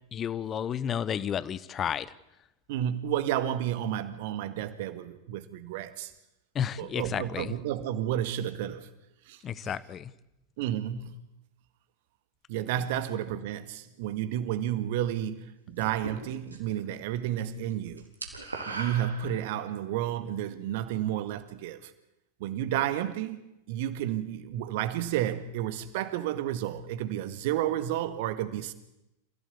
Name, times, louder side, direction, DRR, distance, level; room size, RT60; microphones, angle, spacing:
voice 1, 0.1-2.1 6.5-7.5 9.4-10.1, left 9 dB, 25° left, 1.1 m, -32 dB
voice 2, 2.7-6.1 6.8-8.9 9.3-9.8 10.6-11.2 12.5-18.0 18.7-21.9 22.4-23.4 23.7-28.7, right 11 dB, 50° right, 1.9 m, -31 dB
sound 1, 15.8-16.8 17.1-17.4 17.7-19.8, right 3 dB, 80° right, 4.0 m, -39 dB
28.5 x 16.0 x 8.6 m
figure-of-eight pair, 90°, 0 cm